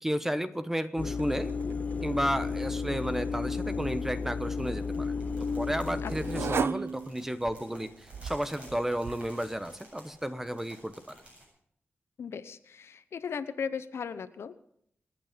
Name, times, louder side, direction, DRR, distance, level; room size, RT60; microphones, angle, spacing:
voice 1, 0.0-1.5 2.0-11.2, equal, 10° right, 12 dB, 1.0 m, -32 dB
sound 1, 1.0-6.7, left 5 dB, 35° left, 0.5 m, -33 dB
sound 2, 1.1-9.8, right 6 dB, 70° right, 0.5 m, -40 dB
sound 3, 4.5-11.4, right 1 dB, 30° right, 8.0 m, -54 dB
voice 2, 6.0-6.5 12.2-14.5, left 6 dB, 80° left, 13 dB, 1.0 m, -37 dB
27.5 x 9.3 x 5.2 m, 0.68 s
wide cardioid pair, 120°, 4 cm